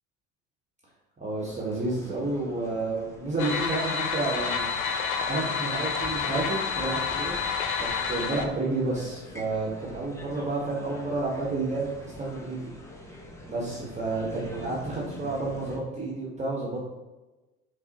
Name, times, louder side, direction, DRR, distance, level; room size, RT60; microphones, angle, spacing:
voice 1, 1.2-5.0 5.3-7.4 7.8-12.7 13.4-16.9, right 2 dB, 15° right, -5 dB, 0.9 m, -30 dB
sound 1, 1.4-15.8, left 1 dB, 5° left, 0.5 m, -45 dB
sound 2, 3.4-8.4, left 6 dB, 80° left, 0.6 m, -29 dB
5.6 x 2.0 x 2.8 m, 1.1 s
hypercardioid pair, 70°, 41 cm